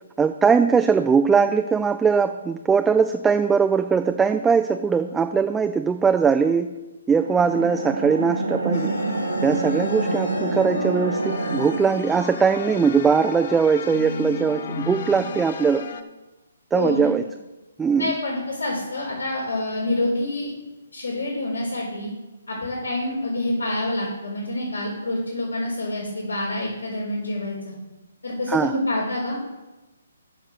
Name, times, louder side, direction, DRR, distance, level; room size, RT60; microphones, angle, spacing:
voice 1, 0.2-6.8 7.1-9.0 9.4-15.9 16.7-17.3 17.8-18.1 28.5-28.7, right 6 dB, 10° right, 7 dB, 0.4 m, -20 dB
sound 1, 7.1-11.8, right 2 dB, 85° right, 1.1 m, -27 dB
sound 2, 8.7-16.0, left 5 dB, 55° left, 0.9 m, -33 dB
voice 2, 16.7-17.1 18.0-20.5 20.9-22.1 22.5-27.7 28.2-29.4, left 1 dB, 90° left, -6 dB, 4.3 m, -27 dB
9.9 x 6.2 x 6.4 m, 1.1 s
figure-of-eight pair, 135°, 0 cm